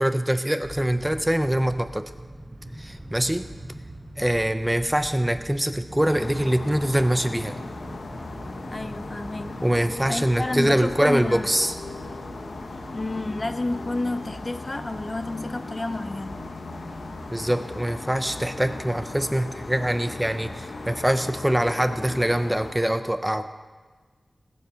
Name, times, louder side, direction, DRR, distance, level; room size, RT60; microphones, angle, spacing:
voice 1, 0.0-2.0 2.8-3.5 4.2-7.6 9.6-11.7 17.3-23.5, right 1 dB, 10° right, 9 dB, 0.7 m, -24 dB
sound 1, 0.6-13.6, right 1 dB, 30° right, 3.8 m, -43 dB
sound 2, 3.7-19.2, right 2 dB, 85° right, 2.7 m, -48 dB
sound 3, 6.0-22.7, left 3 dB, 85° left, 1.1 m, -37 dB
voice 2, 8.7-9.5 10.0-11.5 12.9-16.4, left 2 dB, 30° left, 9 dB, 0.6 m, -30 dB
19.5 x 7.6 x 5.8 m, 1.4 s
wide cardioid pair, 100°, 0 cm